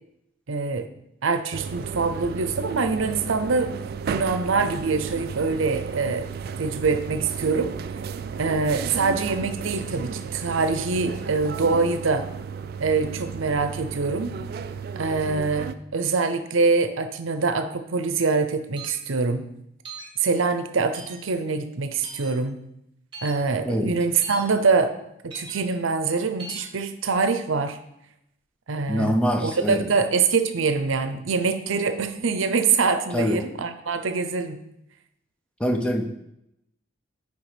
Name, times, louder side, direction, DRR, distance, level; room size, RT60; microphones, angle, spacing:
voice 1, 0.5-0.9 1.2-3.7 4.1-6.3 6.6-7.7 8.4-12.3 12.8-14.4 15.0-19.5 20.2-22.6 23.2-24.9 25.2-27.8 28.7-34.6, right 4 dB, 75° right, 9 dB, 0.6 m, -24 dB
sound 1, 1.5-15.7, right 6 dB, 50° right, 0.3 m, -34 dB
sound 2, 18.8-19.0 19.8-20.1 20.9-21.2 22.0-22.3 23.1-23.3 24.2-24.4 25.3-25.5 26.4-26.6, right 2 dB, 25° right, 1.7 m, -39 dB
voice 2, 28.9-29.9 33.1-33.4 35.6-36.0, equal, 5° left, 4 dB, 0.6 m, -24 dB
9.5 x 3.5 x 5.0 m, 0.82 s
head